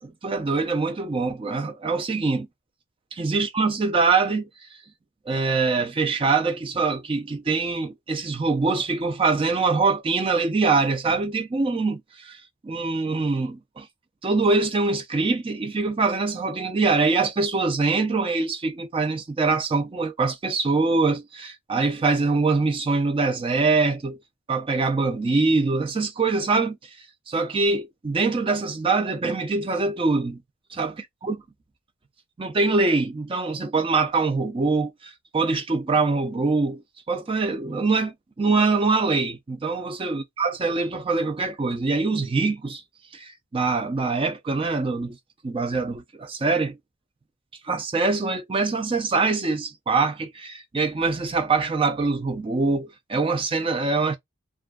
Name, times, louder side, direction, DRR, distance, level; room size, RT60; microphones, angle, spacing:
voice 1, 0.0-2.5 3.1-4.5 5.3-12.4 12.6-13.9 14.2-24.2 24.5-26.8 27.3-30.4 30.7-30.9 31.2-31.4 32.4-36.8 37.1-42.8 43.1-45.2 45.4-46.8 47.6-54.2, right 3 dB, 25° right, 0.3 m, -24 dB
2.5 x 2.2 x 2.2 m
head